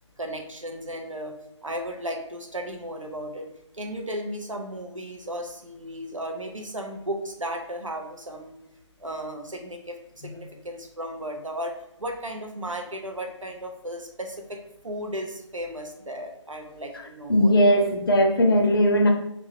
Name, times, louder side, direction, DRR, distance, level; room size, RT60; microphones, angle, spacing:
voice 1, 0.2-1.4 1.6-3.5 3.7-8.6 9.0-14.6 14.8-17.8, equal, 85° right, 3 dB, 0.9 m, -35 dB
voice 2, 16.9-19.1, equal, 45° left, 3 dB, 0.6 m, -20 dB
3.9 x 2.5 x 4.3 m, 0.86 s
figure-of-eight pair, 155°, 16 cm